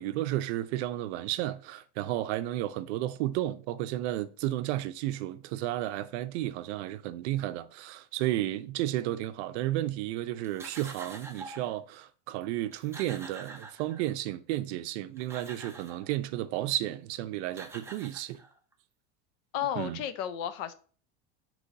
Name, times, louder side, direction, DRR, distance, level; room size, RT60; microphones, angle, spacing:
voice 1, 0.0-18.4 19.8-20.0, right 14 dB, 75° right, 0.5 m, -32 dB
sound 1, 10.4-11.7 12.4-12.5 12.7-14.3 15.0-16.1 17.1-17.2 17.5-18.7, right 3 dB, 10° right, 0.5 m, -46 dB
voice 2, 19.5-20.7, left 10 dB, 60° left, 0.6 m, -33 dB
3.9 x 3.0 x 3.9 m
supercardioid pair, 125°, 33 cm